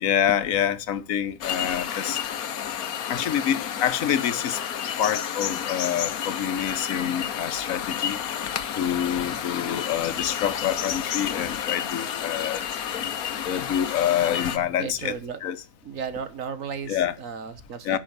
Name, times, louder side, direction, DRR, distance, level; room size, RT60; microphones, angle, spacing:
voice 1, 0.0-2.2 3.1-4.6 5.0-8.2 8.8-12.7 13.4-15.1 15.4-15.6 16.9-17.1 17.8-18.0, left 9 dB, 70° left, 1.4 m, -26 dB
sound 1, 1.4-14.6, left 9 dB, 85° left, 1.4 m, -31 dB
voice 2, 14.8-15.4 15.9-18.0, right 6 dB, 65° right, 1.7 m, -34 dB
10.5 x 6.3 x 8.0 m
omnidirectional pair, 1.5 m